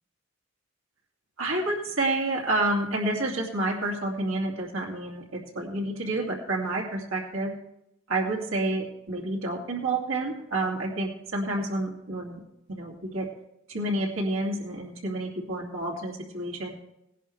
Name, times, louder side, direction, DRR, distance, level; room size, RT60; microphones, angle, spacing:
voice 1, 1.4-7.5 8.1-12.4 12.7-13.3 13.7-16.7, right 2 dB, 75° right, -2 dB, 2.5 m, -29 dB
18.0 x 11.0 x 3.3 m, 0.83 s
head